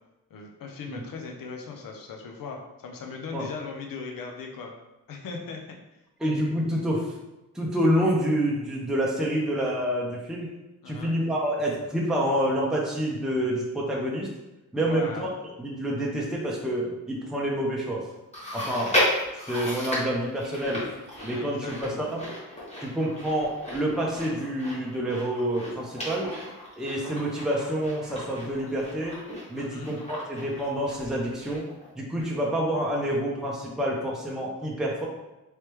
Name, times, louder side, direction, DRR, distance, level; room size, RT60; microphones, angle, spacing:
voice 1, 0.3-4.7 5.1-5.6 10.8-11.2 14.8-15.3 21.3-22.1 29.6-29.9, left 4 dB, 80° left, 1 dB, 0.7 m, -38 dB
voice 2, 6.2-7.1 7.5-10.5 10.9-14.3 14.7-15.3 15.6-18.0 18.5-19.0 19.3-20.8 21.2-22.2 22.8-26.3 26.8-29.2 29.5-31.6 32.0-35.1, equal, ahead, -3 dB, 0.6 m, -27 dB
Chewing mastication, 18.3-31.9 32.2-32.3 33.1-33.2, left 1 dB, 20° left, 1.3 m, -34 dB
3.2 x 3.1 x 3.0 m, 0.99 s
wide cardioid pair, 115°, 33 cm